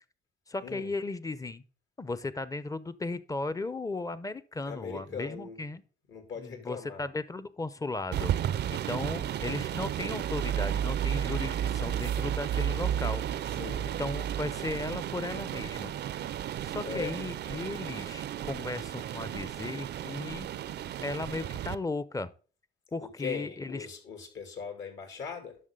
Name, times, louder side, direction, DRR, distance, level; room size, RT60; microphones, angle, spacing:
voice 1, 0.5-1.6 2.0-5.8 6.4-8.3 8.7-13.2 13.8-15.9 16.6-20.5 21.0-22.3 22.9-23.9, left 3 dB, 15° left, 16 dB, 0.6 m, -36 dB
voice 2, 4.7-5.6 6.1-7.1 13.5-13.9 16.8-17.2 23.2-25.6, left 6 dB, 70° left, 4 dB, 2.9 m, -40 dB
sound 1, 8.1-21.8, right 10 dB, 60° right, 0.5 m, -33 dB
11.0 x 6.1 x 3.7 m, 0.39 s
cardioid pair, 90°, 20 cm